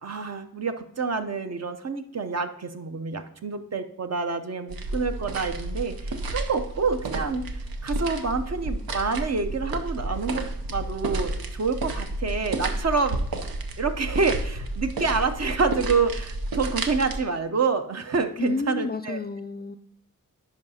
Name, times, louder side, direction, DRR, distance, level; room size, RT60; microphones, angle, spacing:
voice 1, 0.0-13.2 13.8-19.2, right 4 dB, 45° right, 7 dB, 0.7 m, -27 dB
sound 1, 4.7-17.2, right 2 dB, 90° right, 0.7 m, -31 dB
voice 2, 18.4-19.8, left 4 dB, 30° left, 10 dB, 0.3 m, -30 dB
10.5 x 4.9 x 2.7 m, 0.72 s
cardioid pair, 45°, 35 cm